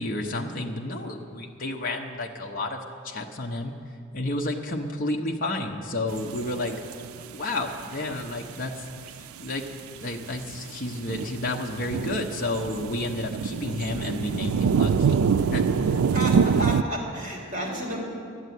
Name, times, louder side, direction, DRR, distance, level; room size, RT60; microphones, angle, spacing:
voice 1, 0.0-6.8 7.3-9.7 10.0-16.0, left 2 dB, 40° left, 1 dB, 0.8 m, -31 dB
sound 1, 6.1-7.3 7.7-7.8 8.1-8.4 9.0-9.2 9.5-9.6 10.0-16.8, right 6 dB, 85° right, 0.4 m, -25 dB
voice 2, 16.1-18.0, equal, 35° right, -2 dB, 2.9 m, -32 dB
12.5 x 8.3 x 9.3 m, 2.4 s
head